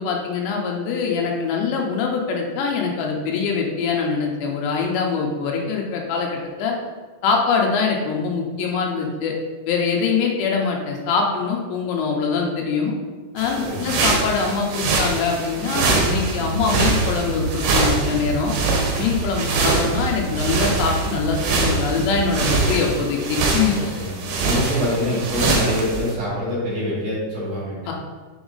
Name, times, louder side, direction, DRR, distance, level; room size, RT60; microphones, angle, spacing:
voice 1, 0.0-6.7 7.2-9.3 9.7-12.9 13.3-18.5 19.0-23.7 27.9-28.0, left 5 dB, 75° left, 0 dB, 2.8 m, -23 dB
sound 1, 13.4-26.1, right 3 dB, 70° right, 2.9 m, -24 dB
sound 2, 16.0-23.1, right 3 dB, 90° right, 1.7 m, -29 dB
voice 2, 23.7-24.1 24.4-27.8, equal, 45° right, -8 dB, 2.4 m, -25 dB
7.1 x 4.2 x 3.9 m, 1.4 s
omnidirectional pair, 5.7 m